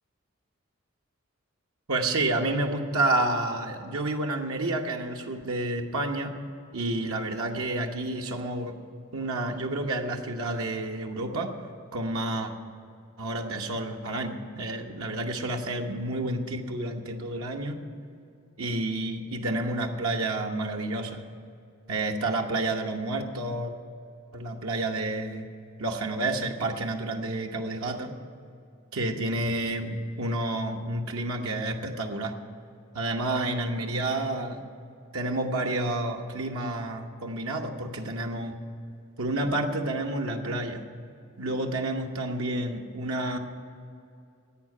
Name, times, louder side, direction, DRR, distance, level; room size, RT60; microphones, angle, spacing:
voice 1, 1.9-6.3 6.7-8.7 9.1-11.5 11.9-12.5 13.2-17.8 18.6-21.2 21.9-23.7 24.3-25.5 25.8-28.1 28.9-32.3 32.9-34.6 35.1-38.6 39.2-40.8 41.4-43.4, right 2 dB, 85° right, 2 dB, 1.1 m, -29 dB
11.5 x 8.3 x 9.7 m, 2.5 s
head